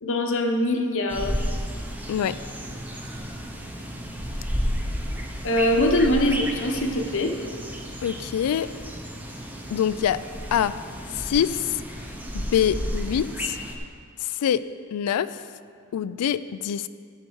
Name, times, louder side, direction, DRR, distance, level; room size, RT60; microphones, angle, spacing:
voice 1, 0.0-1.4 5.4-7.3, left 1 dB, 65° left, 3 dB, 0.9 m, -23 dB
sound 1, 1.1-13.8, equal, 10° right, 0.8 m, -32 dB
voice 2, 8.0-8.7 9.7-10.2 10.5-10.7 11.1-11.7 12.3-13.6 14.2-14.6 14.9-15.4 15.9-16.9, left 9 dB, 85° left, 14 dB, 0.3 m, -25 dB
11.0 x 6.7 x 4.6 m, 2.2 s
head